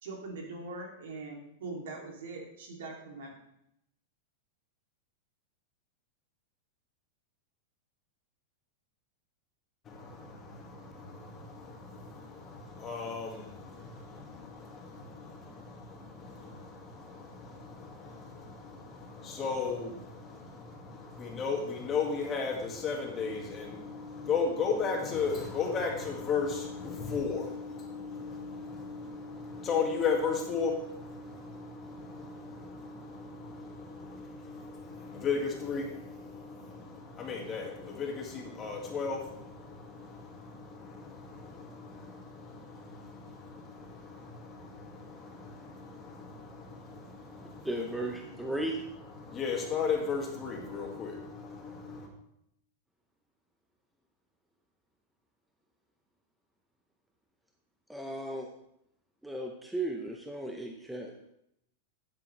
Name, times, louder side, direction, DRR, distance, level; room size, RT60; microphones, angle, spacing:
voice 1, 0.0-3.3, right 3 dB, 75° right, 0 dB, 2.8 m, -42 dB
voice 2, 9.9-48.0 48.2-48.6 49.2-52.1, left 5 dB, 25° left, 0 dB, 1.9 m, -36 dB
voice 3, 47.6-48.8 57.9-58.5 59.2-61.3, right 1 dB, 5° right, 1 dB, 0.7 m, -35 dB
11.5 x 7.6 x 3.3 m, 0.77 s
supercardioid pair, 155°, 0 cm